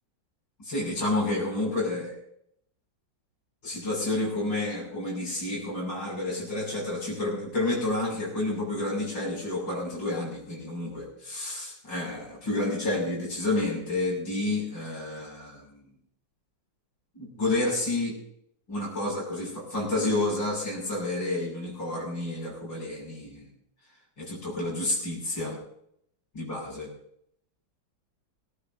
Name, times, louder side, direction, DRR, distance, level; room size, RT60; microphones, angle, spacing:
voice 1, 0.6-2.2 3.6-15.6 17.1-18.2 18.7-23.5 24.2-25.6 26.4-26.9, left 2 dB, 75° left, -2 dB, 7.0 m, -30 dB
19.0 x 18.5 x 2.7 m, 0.72 s
omnidirectional pair, 2.0 m